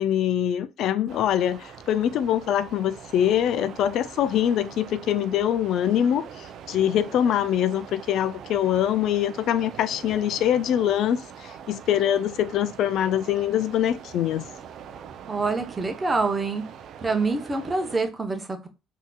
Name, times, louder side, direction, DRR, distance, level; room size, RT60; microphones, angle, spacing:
voice 1, 0.0-14.5, left 10 dB, 70° left, 0.3 m, -24 dB
sound 1, 1.1-18.0, right 8 dB, 65° right, 0.4 m, -43 dB
voice 2, 15.3-16.6 17.0-18.7, right 3 dB, 25° right, 0.8 m, -26 dB
3.8 x 2.8 x 2.2 m
cardioid pair, 90°, 0 cm